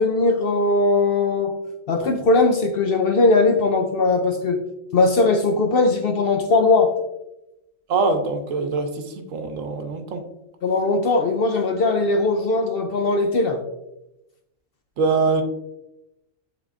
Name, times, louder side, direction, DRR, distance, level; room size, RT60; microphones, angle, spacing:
voice 1, 0.0-1.5 1.9-4.6 4.9-6.9 10.6-13.6, left 3 dB, 60° left, 5 dB, 0.6 m, -19 dB
voice 2, 7.9-8.9 9.3-10.2 15.0-15.4, right 4 dB, 75° right, 6 dB, 1.2 m, -22 dB
10.0 x 3.9 x 2.5 m, 0.90 s
omnidirectional pair, 1.4 m